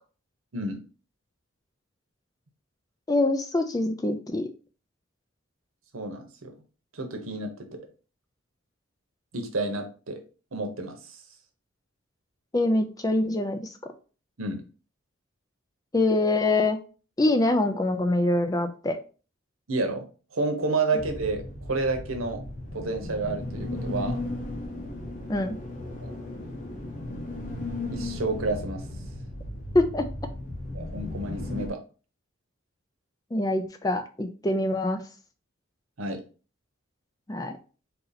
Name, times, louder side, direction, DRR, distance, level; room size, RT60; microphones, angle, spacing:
voice 1, 3.1-4.5 12.5-13.7 15.9-16.8 17.2-19.0 25.3-25.6 29.7-30.1 33.3-35.0 37.3-37.5, left 2 dB, 20° left, 7 dB, 0.4 m, -24 dB
voice 2, 5.9-6.5 6.9-7.8 9.3-10.2 10.5-11.0 14.4-14.6 19.7-20.0 20.3-22.4 22.7-24.2 26.0-26.1 27.9-28.8 30.7-31.8 36.0-36.2, right 3 dB, 85° right, 5 dB, 0.9 m, -30 dB
sound 1, 21.0-31.7, left 2 dB, 40° left, 0.8 m, -35 dB
3.9 x 2.8 x 4.0 m, 0.36 s
head